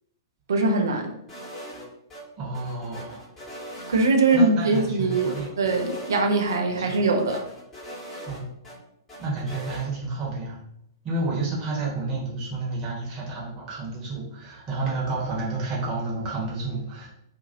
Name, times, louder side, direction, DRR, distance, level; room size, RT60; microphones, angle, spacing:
voice 1, 0.5-1.1 3.9-7.4, right 3 dB, 65° right, 3 dB, 0.5 m, -22 dB
sound 1, 1.3-2.2 2.5-4.4 4.7-6.2 6.5-6.6 6.9-8.7 9.1-9.9, equal, 15° left, 1.2 m, -40 dB
voice 2, 2.4-3.6 4.3-5.5 6.7-7.0 8.3-8.5 9.2-10.6 11.0-17.1, right 3 dB, 30° right, -4 dB, 1.1 m, -30 dB
2.7 x 2.5 x 2.6 m, 0.77 s
figure-of-eight pair, 105°, 2 cm